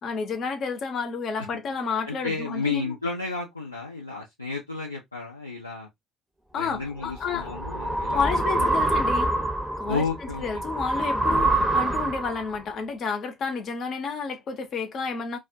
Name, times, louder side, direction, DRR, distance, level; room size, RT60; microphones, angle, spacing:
voice 1, 0.0-3.0 6.5-7.5 8.1-9.3 9.8-10.1 10.4-15.4, left 5 dB, 50° left, 0.7 m, -30 dB
voice 2, 2.1-5.9 6.6-8.7 9.9-10.4, left 4 dB, 90° left, 0.4 m, -32 dB
sound 1, 6.8-12.6, right 2 dB, 10° right, 0.7 m, -26 dB
2.3 x 2.2 x 2.5 m
figure-of-eight pair, 50°, 0 cm